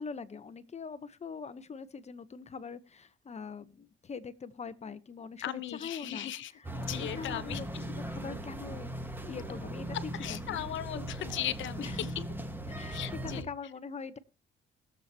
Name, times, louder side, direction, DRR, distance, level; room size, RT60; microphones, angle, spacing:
voice 1, 0.0-8.9 9.2-10.0 10.3-10.6 10.9-11.1 11.8-12.2 12.7-13.0 13.2-14.2, left 5 dB, 35° left, 13 dB, 1.0 m, -43 dB
voice 2, 5.4-7.8 10.1-12.1 12.9-13.5, left 12 dB, 75° left, 14 dB, 1.0 m, -38 dB
sound 1, 6.6-13.4, right 1 dB, 10° right, 1.6 m, -39 dB
21.5 x 7.6 x 2.9 m, 0.32 s
cardioid pair, 90°, 20 cm